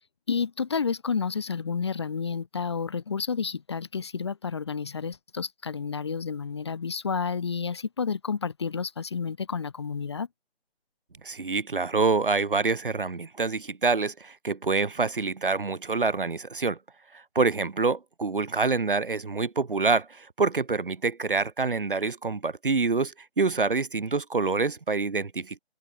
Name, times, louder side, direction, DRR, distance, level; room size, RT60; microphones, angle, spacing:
voice 1, 0.3-10.3, left 6 dB, 25° left, 1.1 m, -30 dB
voice 2, 11.2-16.8 17.4-25.6, right 4 dB, 55° right, 1.8 m, -26 dB
figure-of-eight pair, 150°, 32 cm